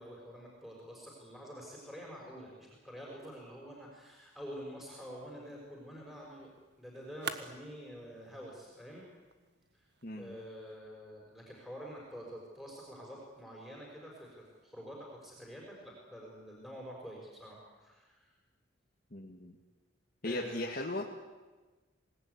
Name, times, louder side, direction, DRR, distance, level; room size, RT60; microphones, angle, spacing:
voice 1, 0.0-6.5 6.8-9.1 9.7-9.9 10.2-18.3 20.2-20.7, equal, ahead, -2 dB, 5.9 m, -47 dB
sound 1, 4.9-10.8, right 6 dB, 55° right, 1.5 m, -49 dB
voice 2, 10.0-10.4 19.1-19.6 20.2-21.0, left 1 dB, 45° left, -1 dB, 2.0 m, -37 dB
26.5 x 19.0 x 9.8 m, 1.3 s
head